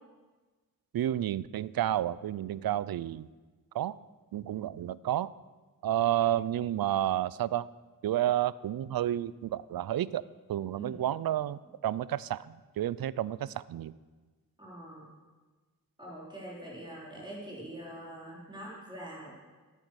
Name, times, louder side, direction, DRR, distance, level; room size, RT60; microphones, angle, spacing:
voice 1, 0.9-3.3 3.7-4.0 4.3-5.3 5.8-7.7 8.0-10.2 10.5-13.9, right 12 dB, 85° right, 19 dB, 0.5 m, -30 dB
voice 2, 14.6-15.1 16.0-19.4, right 1 dB, 10° right, -5 dB, 3.9 m, -44 dB
13.5 x 9.0 x 6.3 m, 1.3 s
wide cardioid pair, 175°, 35 cm